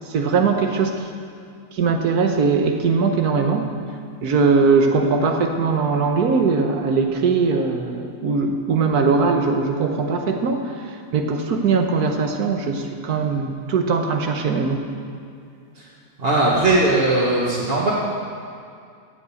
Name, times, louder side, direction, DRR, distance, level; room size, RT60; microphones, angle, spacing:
voice 1, 0.1-1.0 1.7-3.7 4.2-10.7 11.1-14.9, right 4 dB, 80° right, 4 dB, 1.6 m, -20 dB
voice 2, 16.2-17.9, right 2 dB, 40° right, -7 dB, 1.7 m, -19 dB
15.5 x 5.3 x 8.4 m, 2.3 s
omnidirectional pair, 1.6 m